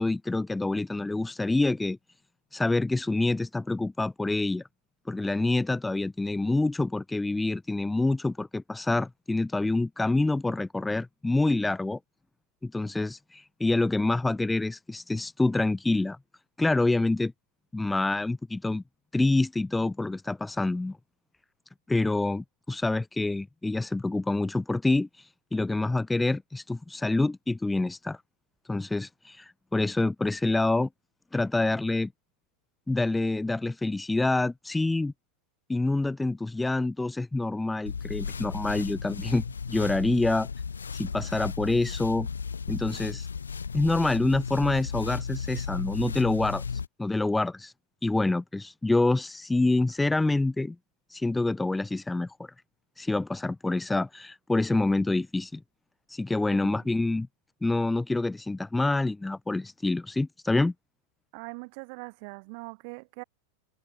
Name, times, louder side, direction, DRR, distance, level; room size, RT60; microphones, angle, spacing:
voice 1, 0.0-2.0 2.5-4.6 5.1-12.0 12.6-16.2 16.6-17.3 17.7-18.8 19.1-21.0 21.9-25.1 25.5-28.2 28.7-30.9 31.3-32.1 32.9-35.1 35.7-40.5 41.0-42.3 42.7-43.3 43.7-46.6 47.0-47.7 48.0-50.8 51.1-52.3 53.0-55.6 56.1-57.3 57.6-60.7, left 2 dB, 5° left, 0.6 m, -27 dB
sound 1, 37.9-46.9, left 6 dB, 75° left, 0.6 m, -35 dB
voice 2, 56.5-56.9 61.3-63.2, right 36 dB, 45° right, 2.5 m, -42 dB
figure-of-eight pair, 90°, 0 cm